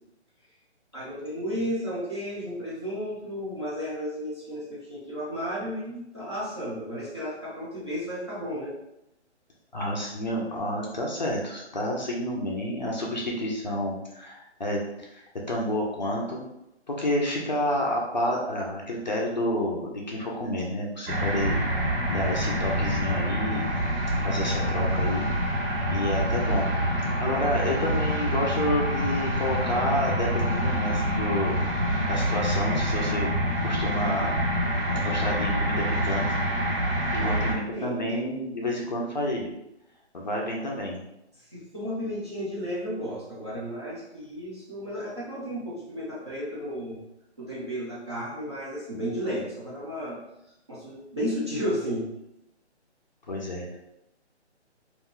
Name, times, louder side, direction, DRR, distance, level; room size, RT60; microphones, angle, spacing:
voice 1, 0.9-8.7 27.2-27.6 37.1-38.0 41.5-47.0 47.4-50.2 50.7-52.1, equal, 25° right, -8 dB, 0.5 m, -33 dB
voice 2, 9.7-16.4 16.9-21.6 22.1-23.7 24.2-25.3 25.9-26.7 27.2-31.6 32.1-33.3 33.6-34.3 34.9-36.3 37.1-39.5 40.1-41.0 53.3-53.8, left 1 dB, 40° left, -2 dB, 0.5 m, -29 dB
sound 1, 21.1-37.5, equal, 55° right, 0.9 m, -26 dB
2.4 x 2.2 x 3.6 m, 0.86 s
hypercardioid pair, 170°, 35 cm